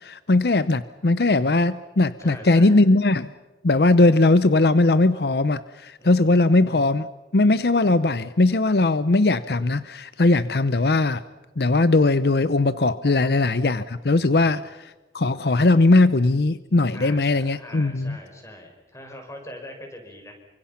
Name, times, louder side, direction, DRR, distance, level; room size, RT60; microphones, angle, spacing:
voice 1, 0.0-3.3 3.6-7.1 7.3-11.2 11.6-14.6 15.1-18.2, left 2 dB, 65° left, 14 dB, 0.7 m, -19 dB
voice 2, 2.2-2.8 6.0-6.4 13.2-13.5 14.3-14.6 16.9-20.3, left 1 dB, 15° left, 3 dB, 5.6 m, -42 dB
29.0 x 25.0 x 5.8 m, 1.2 s
head